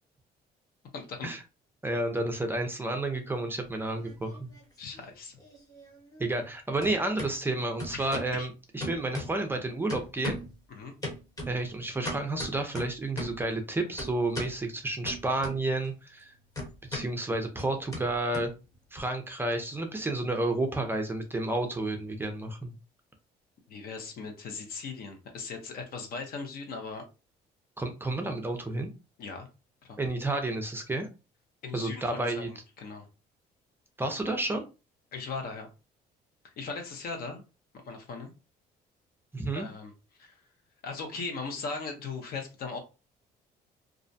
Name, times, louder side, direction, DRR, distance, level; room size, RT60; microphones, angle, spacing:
voice 1, 0.9-1.3 4.8-5.4 7.9-8.5 10.7-10.9 23.7-27.1 29.2-29.5 29.8-30.0 31.6-33.1 35.1-35.7 36.4-37.4 37.7-38.3 39.5-39.9 40.2-40.4 40.8-42.8, left 4 dB, 60° left, 4 dB, 0.7 m, -38 dB
voice 2, 1.8-4.5 6.2-10.4 11.5-16.3 16.9-18.5 18.9-22.7 27.8-28.9 30.0-31.1 31.7-32.5 34.0-34.6 39.3-39.7, right 2 dB, 15° right, 4 dB, 0.4 m, -31 dB
sound 1, 3.7-4.6 4.9-6.5 6.8-7.3 7.8-8.4 8.8-9.6 9.9-10.6 11.0-13.5 14.0-14.6 15.0-15.9 16.1-19.0, left 1 dB, 20° left, 1.0 m, -39 dB
2.4 x 2.0 x 2.6 m, 0.30 s
cardioid pair, 110°, 17 cm